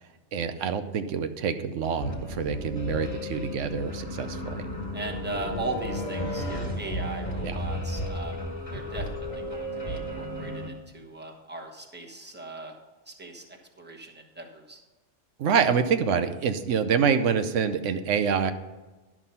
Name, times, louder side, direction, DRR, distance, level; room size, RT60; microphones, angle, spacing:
voice 1, 0.3-4.7 7.4-7.6 15.4-18.5, right 6 dB, 85° right, 8 dB, 1.0 m, -26 dB
sound 1, 2.0-10.7, left 1 dB, 30° left, 1.3 m, -33 dB
voice 2, 4.9-8.4 8.7-12.8 13.1-14.8, right 2 dB, 10° right, 0 dB, 1.2 m, -38 dB
11.0 x 6.0 x 5.6 m, 1.2 s
omnidirectional pair, 1.2 m